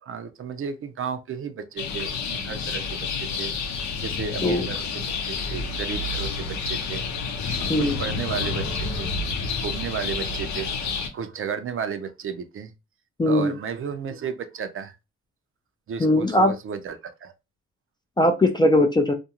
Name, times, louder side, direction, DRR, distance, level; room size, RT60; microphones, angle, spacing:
voice 1, 0.0-3.5 4.0-7.0 7.6-9.1 9.4-10.7 11.1-12.7 13.3-14.9 15.9-17.3, right 7 dB, 45° right, 0.5 m, -33 dB
sound 1, 1.8-11.1, left 4 dB, 70° left, 0.7 m, -29 dB
voice 2, 13.2-13.5 16.0-16.5 18.2-19.1, left 1 dB, 15° left, 0.4 m, -19 dB
2.5 x 2.3 x 2.8 m
cardioid pair, 90°, 30 cm